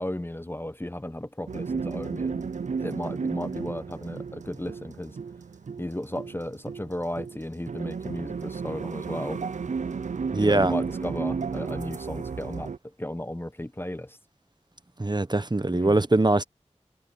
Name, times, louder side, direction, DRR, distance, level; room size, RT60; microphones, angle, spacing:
voice 1, 0.0-2.4 2.8-5.2 5.8-9.4 10.4-12.7 13.0-14.2 15.7-16.0, left 1 dB, 20° left, 0.8 m, -34 dB
sound 1, 1.5-12.8, right 5 dB, 80° right, 0.4 m, -33 dB
voice 2, 10.3-10.7 15.0-16.4, right 2 dB, 35° right, 1.1 m, -22 dB
wide cardioid pair, 45°, 12 cm